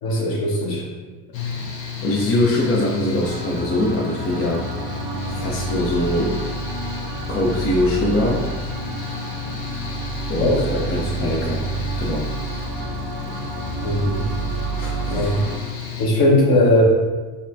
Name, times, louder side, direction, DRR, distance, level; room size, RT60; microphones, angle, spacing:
voice 1, 0.0-0.8 10.4-10.6 13.8-14.2 15.1-15.4 16.0-16.8, left 1 dB, 45° left, -3 dB, 1.2 m, -19 dB
Mechanical fan, 1.3-16.1, left 8 dB, 80° left, 0.8 m, -32 dB
voice 2, 2.0-4.7 5.3-6.4 7.3-8.5 10.3-11.6 12.0-12.3 14.8-15.5, left 1 dB, 30° left, -3 dB, 0.6 m, -23 dB
sound 1, 3.2-15.6, right 5 dB, 55° right, 0.7 m, -30 dB
5.3 x 2.3 x 2.6 m, 1.3 s
hypercardioid pair, 65°, 50 cm